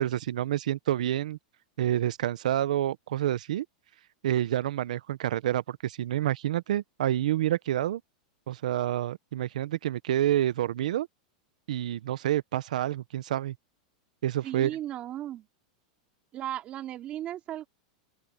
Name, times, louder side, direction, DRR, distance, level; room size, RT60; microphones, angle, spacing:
voice 1, 0.0-1.4 1.8-3.7 4.2-8.0 8.5-11.1 11.7-13.5 14.2-14.7, right 12 dB, 85° right, 0.8 m, -28 dB
voice 2, 14.4-15.5 16.3-17.7, right 12 dB, 30° right, 3.0 m, -36 dB
open air
supercardioid pair, 150°, 4 cm